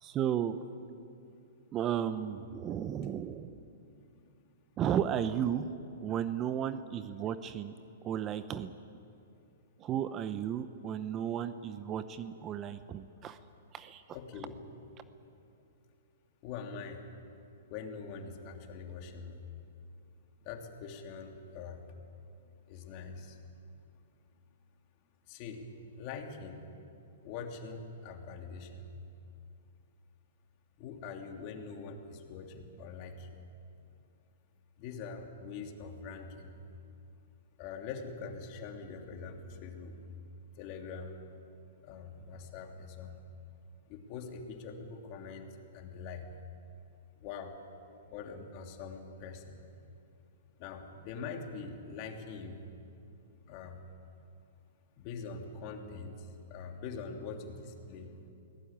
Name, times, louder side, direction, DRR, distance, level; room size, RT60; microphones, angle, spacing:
voice 1, 0.0-0.6 1.7-3.5 4.8-5.7 6.0-7.7 8.0-8.7 9.8-13.4 13.7-14.0, right 9 dB, 25° right, 12 dB, 0.7 m, -34 dB
voice 2, 14.1-14.6 16.4-17.0 17.7-19.4 20.4-21.8 22.7-23.4 25.3-25.6 25.9-26.6 27.2-28.9 30.8-33.4 34.8-36.6 37.6-40.2 40.6-41.2 41.8-43.2 43.9-45.5 45.7-46.3 47.2-47.6 48.1-49.6 50.6-52.6 53.5-53.8 55.0-58.3, left 5 dB, 40° left, 3 dB, 3.0 m, -43 dB
23.0 x 17.5 x 8.9 m, 2.6 s
hypercardioid pair, 140°, 0 cm